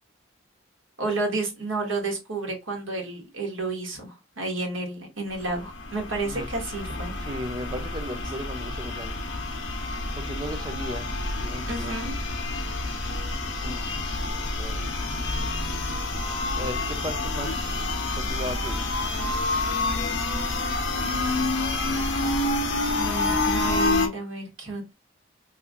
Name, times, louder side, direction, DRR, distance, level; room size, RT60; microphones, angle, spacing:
voice 1, 1.0-7.1 11.6-12.1 22.9-24.9, right 2 dB, 85° right, 1.4 m, -31 dB
sound 1, 5.3-24.1, left 2 dB, 65° left, 0.9 m, -28 dB
voice 2, 7.2-9.2 10.2-11.1 11.4-12.0 13.6-14.9 16.5-17.9 18.2-19.1, equal, 20° right, 0.5 m, -36 dB
3.3 x 2.9 x 2.4 m
head